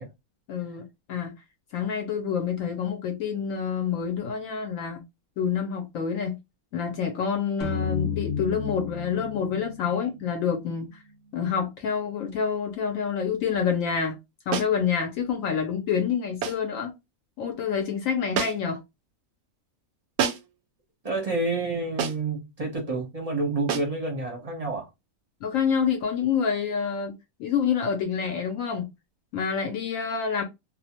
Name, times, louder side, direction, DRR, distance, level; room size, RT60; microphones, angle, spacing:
voice 1, 0.5-0.8 1.1-1.3 1.7-5.0 5.4-6.4 6.7-10.9 11.3-14.2 14.5-16.9 17.4-18.8 25.4-27.1 27.4-28.9 29.3-30.4, left 7 dB, 75° left, 0.9 m, -27 dB
sound 1, 7.6-11.1, left 7 dB, 35° left, 1.0 m, -33 dB
sound 2, 14.5-14.8 16.4-16.7 18.3-18.8 20.2-20.6 22.0-22.3 23.7-24.0, right 7 dB, 90° right, 1.0 m, -29 dB
voice 2, 21.0-24.9, right 3 dB, 35° right, 0.6 m, -29 dB
2.5 x 2.1 x 2.7 m
omnidirectional pair, 1.5 m